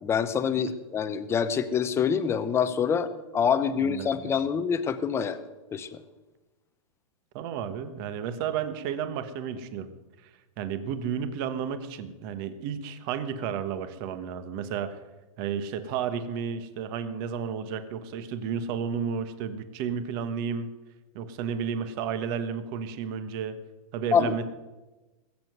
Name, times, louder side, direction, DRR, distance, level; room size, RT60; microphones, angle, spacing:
voice 1, 0.0-3.1 3.3-5.4 5.7-6.0 24.1-24.4, left 7 dB, 15° left, 11 dB, 0.8 m, -26 dB
voice 2, 3.8-4.3 7.3-9.9 10.6-15.0 15.4-20.7 21.1-23.6 23.9-24.4, right 7 dB, 40° right, 11 dB, 1.4 m, -32 dB
20.5 x 7.8 x 8.0 m, 1.1 s
hypercardioid pair, 150°, 19 cm